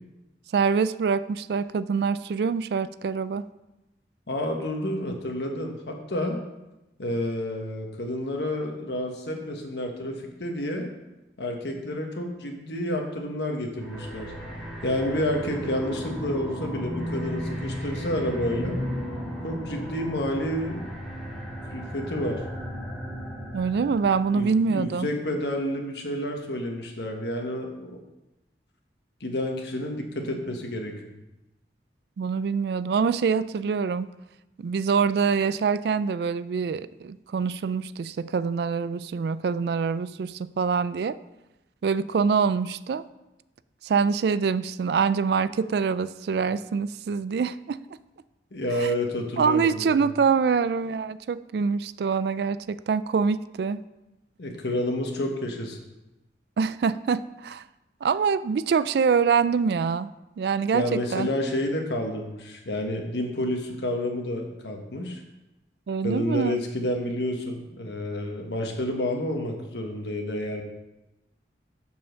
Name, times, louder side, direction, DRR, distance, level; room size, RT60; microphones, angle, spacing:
voice 1, 0.5-3.4 23.5-25.1 32.2-34.1 34.6-41.2 41.8-43.0 43.8-47.8 48.8-48.9 49.4-53.8 56.6-57.6 58.0-60.1 60.4-61.3 65.9-66.6, right 5 dB, 60° right, 16 dB, 0.3 m, -25 dB
voice 2, 4.3-6.4 7.0-10.9 11.4-14.3 14.8-18.8 19.4-20.9 21.7-22.4 24.3-27.9 29.2-30.9 48.5-50.1 54.4-55.8 60.7-65.2 66.0-70.6, left 1 dB, 70° left, 2 dB, 1.3 m, -29 dB
sound 1, 13.8-24.3, equal, ahead, 1.9 m, -35 dB
7.0 x 5.5 x 6.3 m, 0.98 s
head